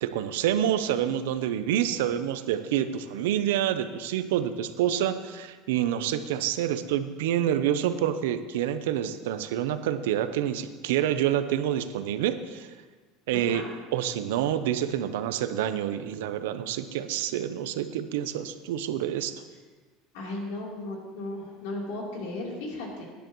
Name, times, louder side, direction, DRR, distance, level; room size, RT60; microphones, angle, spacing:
voice 1, 0.0-12.7 13.3-13.6 13.9-19.3, right 10 dB, 90° right, 11 dB, 0.7 m, -27 dB
voice 2, 13.3-13.7 20.1-23.1, left 2 dB, 75° left, -3 dB, 3.5 m, -35 dB
17.5 x 10.0 x 3.1 m, 1.4 s
supercardioid pair, 130°, 0 cm